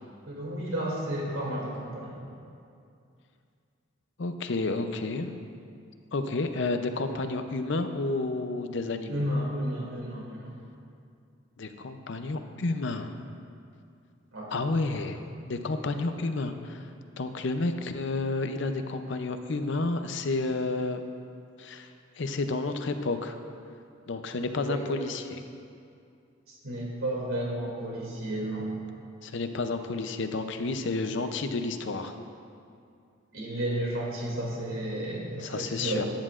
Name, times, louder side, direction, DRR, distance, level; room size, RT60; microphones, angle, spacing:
voice 1, 0.3-2.2 9.1-10.6 14.3-14.5 24.6-24.9 26.5-28.7 33.3-36.1, right 1 dB, 85° right, -3 dB, 2.6 m, -32 dB
voice 2, 4.2-5.3 6.1-9.2 11.6-13.1 14.5-15.2 15.5-16.9 17.2-21.0 21.6-21.9 22.2-23.4 24.1-25.4 29.2-32.1 35.4-36.0, left 3 dB, 60° left, 8 dB, 0.6 m, -30 dB
15.0 x 10.5 x 2.5 m, 2.4 s
head